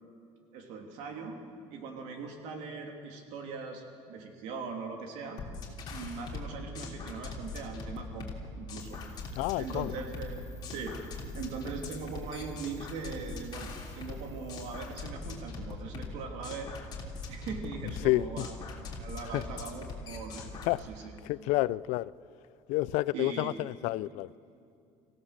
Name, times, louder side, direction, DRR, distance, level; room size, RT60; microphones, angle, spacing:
voice 1, 0.5-1.4 1.7-5.4 5.9-10.9 11.4-16.7 17.3-18.5 18.9-20.5 20.8-21.1 23.1-23.7, right 5 dB, 80° right, 3.1 m, -40 dB
sound 1, 5.4-20.8, left 3 dB, 40° left, 3.1 m, -41 dB
sound 2, 8.8-15.0, left 1 dB, 25° right, 2.2 m, -58 dB
voice 2, 9.3-10.0 18.0-18.5 19.3-19.4 20.7-20.8 21.2-22.1 22.7-24.3, left 18 dB, 80° left, 0.5 m, -29 dB
26.0 x 16.0 x 6.6 m
cardioid pair, 150°, 12 cm